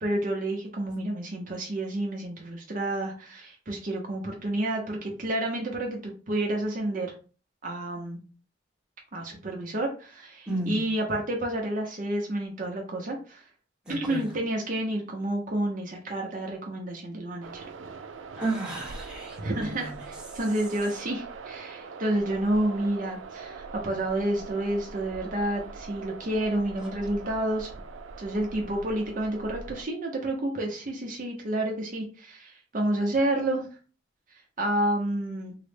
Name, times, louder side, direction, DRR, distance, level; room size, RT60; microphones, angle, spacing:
voice 1, 0.0-7.1 7.6-8.2 9.1-13.4 13.9-17.6 19.4-27.7 28.2-33.7 34.6-35.6, right 1 dB, 45° right, 0.6 m, -30 dB
voice 2, 10.5-10.8 13.9-14.3 18.4-20.0, right 2 dB, 5° right, 1.0 m, -32 dB
sound 1, 17.4-29.9, right 4 dB, 85° right, 0.4 m, -42 dB
3.7 x 2.1 x 3.3 m
head